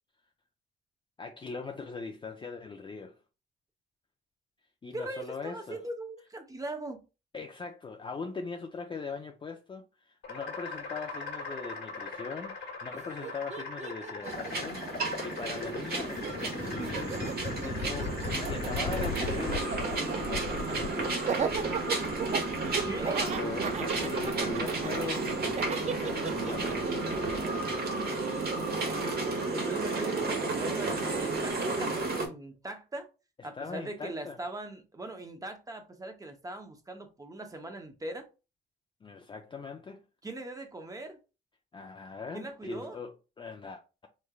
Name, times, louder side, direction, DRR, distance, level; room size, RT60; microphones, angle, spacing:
voice 1, 1.2-3.2 4.8-5.8 7.3-17.3 17.6-21.2 23.2-27.0 33.5-34.4 39.0-40.0 41.7-44.1, left 4 dB, 25° left, 0.4 m, -41 dB
voice 2, 4.9-7.0 22.8-23.2 29.5-33.1 33.4-38.3 40.2-41.2 42.3-43.0, right 2 dB, 15° right, 0.8 m, -40 dB
sound 1, 10.2-29.0, left 4 dB, 65° left, 1.3 m, -40 dB
Laughter, 12.9-13.0 13.2-15.6 15.9-28.9, right 7 dB, 35° right, 0.4 m, -37 dB
sound 2, 14.2-32.3, right 3 dB, 50° right, 1.1 m, -32 dB
3.4 x 3.2 x 2.3 m
cardioid pair, 90°, 20 cm